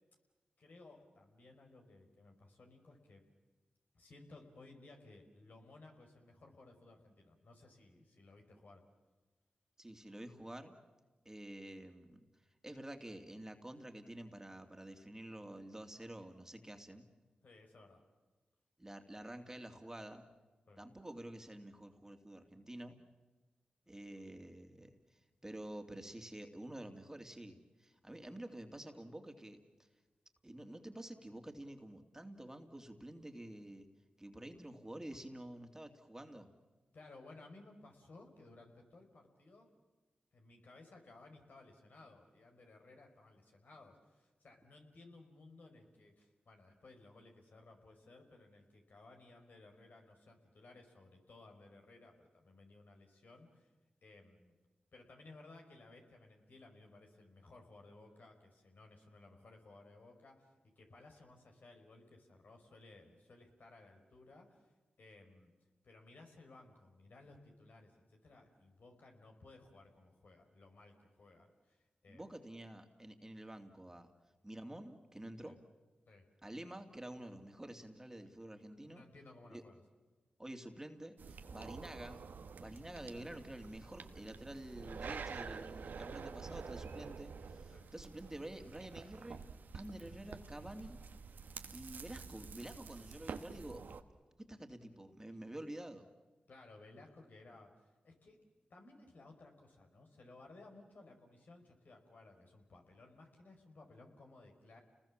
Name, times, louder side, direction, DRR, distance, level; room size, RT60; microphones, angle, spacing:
voice 1, 0.6-3.2 3.9-8.8 17.4-18.0 20.7-20.8 24.1-24.2 36.9-39.7 40.3-53.7 54.0-54.5 54.9-64.7 65.0-65.5 65.8-72.4 75.4-75.6 76.1-76.3 78.9-79.8 87.7-87.9 96.5-98.4 98.7-104.8, left 2 dB, 65° left, 2 dB, 4.9 m, -59 dB
voice 2, 9.8-10.8 11.2-12.3 12.6-17.1 18.8-20.2 20.8-23.0 23.9-29.9 30.4-33.9 34.2-36.5 72.1-74.1 74.4-75.6 76.4-79.0 79.5-79.6 80.4-82.3 82.6-89.5 89.7-91.0 91.7-93.8 94.4-96.1, right 1 dB, 15° right, 6 dB, 2.6 m, -49 dB
sound 1, 81.2-94.0, right 5 dB, 80° right, 1.3 m, -48 dB
30.0 x 20.5 x 7.4 m, 1.2 s
cardioid pair, 45°, 3 cm